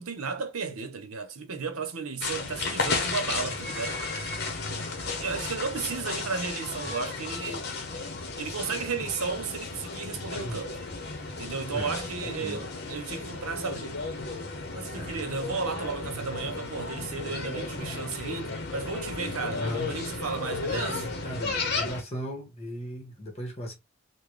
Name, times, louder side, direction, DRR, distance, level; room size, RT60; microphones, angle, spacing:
voice 1, 0.0-4.0 5.2-7.7 8.4-10.8 11.4-14.1 14.7-21.1, right 5 dB, 85° right, 0.8 m, -34 dB
sound 1, 2.2-22.0, left 3 dB, 45° left, 0.9 m, -34 dB
voice 2, 4.6-4.9 10.3-10.6 11.7-12.0 12.2-12.6 14.9-15.2 19.6-19.9 20.7-23.7, equal, 30° left, 1.3 m, -37 dB
3.9 x 2.2 x 3.2 m
head